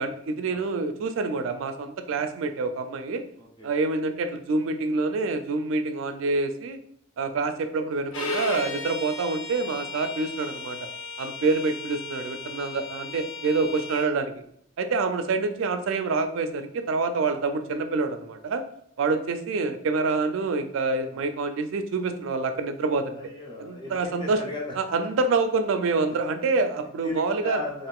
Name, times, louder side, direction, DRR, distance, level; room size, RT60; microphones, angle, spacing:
voice 1, 0.0-3.2 3.6-6.8 7.2-10.8 11.2-14.3 14.8-18.6 19.0-23.2 23.6-24.4 24.8-27.6, right 3 dB, 70° right, 8 dB, 0.3 m, -27 dB
voice 2, 3.4-3.7 21.1-21.2 23.1-24.8 26.7-26.8 27.0-27.9, left 2 dB, 20° left, -3 dB, 0.5 m, -36 dB
Bowed string instrument, 8.1-14.1, left 3 dB, 75° left, 0.5 m, -35 dB
3.5 x 2.4 x 2.3 m, 0.69 s
head